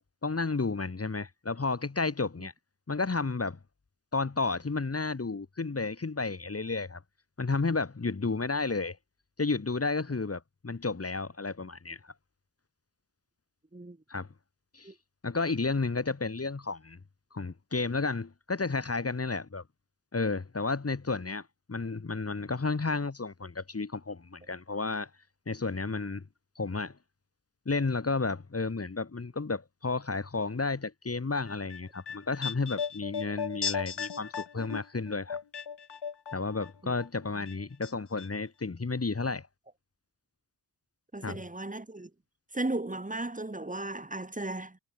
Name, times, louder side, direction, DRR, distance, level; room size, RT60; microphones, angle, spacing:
voice 1, 0.2-2.5 2.9-3.6 4.1-7.0 7.4-9.0 9.4-12.1 14.1-14.3 14.7-14.9 15.2-17.0 17.3-19.6 20.1-25.1 25.5-26.2 26.5-27.0 27.6-35.4 36.3-39.5 41.2-41.4, left 3 dB, 35° left, 3.3 m, -32 dB
sound 1, 31.5-36.7 37.0-37.9 38.2-38.3, left 7 dB, 65° left, 3.0 m, -37 dB
voice 2, 41.1-42.1 42.5-44.8, right 2 dB, 20° right, 4.0 m, -35 dB
wide cardioid pair, 125°, 43 cm